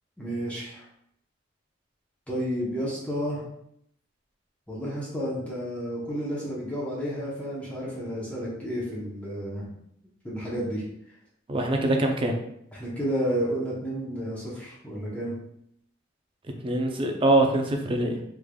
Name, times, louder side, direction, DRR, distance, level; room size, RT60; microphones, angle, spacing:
voice 1, 0.2-0.8 2.3-3.4 4.7-9.7 10.2-10.8 12.7-15.4, equal, 5° left, -7 dB, 0.8 m, -31 dB
voice 2, 11.5-12.4 16.6-18.2, right 1 dB, 30° right, 3 dB, 0.5 m, -23 dB
3.6 x 3.3 x 2.2 m, 0.72 s
head